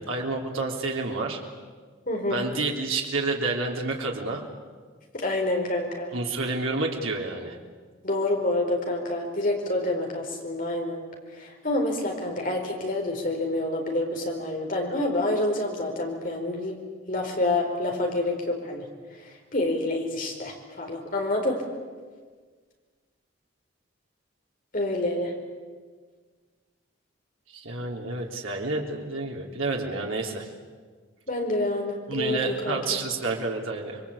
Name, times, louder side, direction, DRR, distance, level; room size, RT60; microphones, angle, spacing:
voice 1, 0.0-1.4 2.3-4.4 6.1-7.6 27.5-30.5 32.1-34.0, right 3 dB, 85° right, 0 dB, 3.4 m, -29 dB
voice 2, 2.1-2.4 5.1-6.1 8.0-11.0 11.3-16.8 17.1-21.7 24.7-25.3 31.3-32.8, left 2 dB, 40° left, 1 dB, 4.8 m, -28 dB
26.5 x 23.0 x 8.5 m, 1.5 s
head